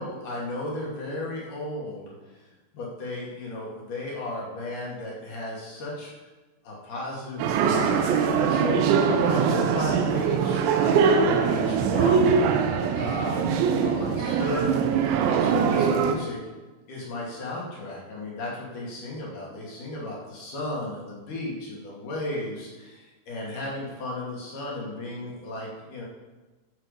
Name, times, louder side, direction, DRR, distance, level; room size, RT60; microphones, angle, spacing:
voice 1, 0.0-2.1 2.7-6.1 6.6-12.4 12.9-14.7 15.0-16.4 16.9-26.0, left 2 dB, 50° left, -4 dB, 3.4 m, -34 dB
sound 1, 7.4-16.1, right 6 dB, 80° right, 3.0 m, -22 dB
15.0 x 6.3 x 5.3 m, 1.2 s
omnidirectional pair, 5.6 m